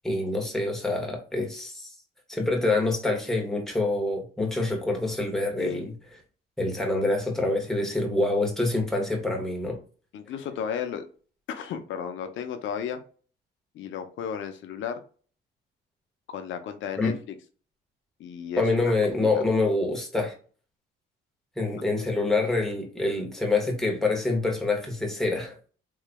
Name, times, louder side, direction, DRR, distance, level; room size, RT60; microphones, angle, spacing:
voice 1, 0.0-1.9 2.3-5.9 6.6-9.8 17.0-17.1 18.6-20.3 21.6-25.5, left 2 dB, ahead, 1.3 m, -26 dB
voice 2, 5.6-5.9 10.1-11.1 11.5-13.0 13.7-15.0 16.3-17.1 18.2-18.9 19.3-19.4, left 8 dB, 75° left, 0.6 m, -34 dB
3.8 x 3.1 x 2.2 m
cardioid pair, 90°, 20 cm